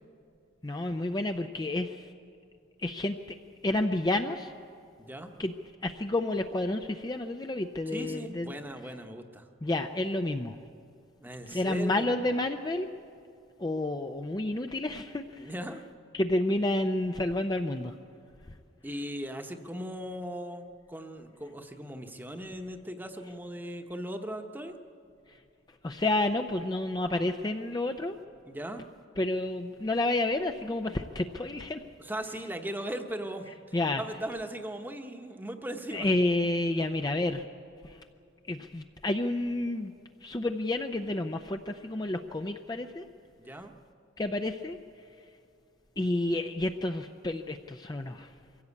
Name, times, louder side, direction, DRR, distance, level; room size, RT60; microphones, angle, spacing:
voice 1, 0.6-2.1 2.8-3.4 3.6-4.5 5.4-5.5 5.8-8.5 9.6-10.6 11.5-12.9 13.6-15.5 16.1-17.9 25.3-25.4 25.8-28.2 29.2-31.8 33.7-34.0 35.9-37.5 37.8-38.0 38.5-39.9 40.2-43.1 44.2-44.8 46.0-48.3, left 2 dB, 20° left, 6 dB, 0.5 m, -30 dB
voice 2, 5.0-5.3 7.9-9.4 11.2-12.1 15.4-15.8 18.8-24.8 28.4-28.8 32.0-33.5 33.9-36.1 43.4-43.7, right 1 dB, 10° right, 6 dB, 1.0 m, -38 dB
23.5 x 16.0 x 8.4 m, 2.4 s
head